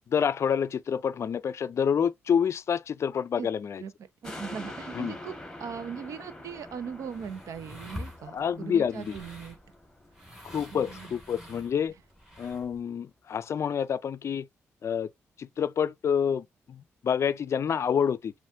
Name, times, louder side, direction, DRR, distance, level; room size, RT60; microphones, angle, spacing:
voice 1, 0.1-3.8 4.9-5.2 8.3-9.2 10.4-11.9 12.4-14.5 14.8-15.1 15.4-18.3, left 7 dB, 60° left, 0.4 m, -28 dB
sound 1, 4.2-10.9 11.3-11.4, left 1 dB, 10° left, 1.5 m, -45 dB
voice 2, 4.2-5.3 5.6-9.6 10.7-11.1, right 6 dB, 75° right, 0.7 m, -39 dB
sound 2, 6.5-12.8, left 1 dB, 10° right, 1.9 m, -46 dB
7.2 x 2.5 x 2.6 m
supercardioid pair, 60°, 6 cm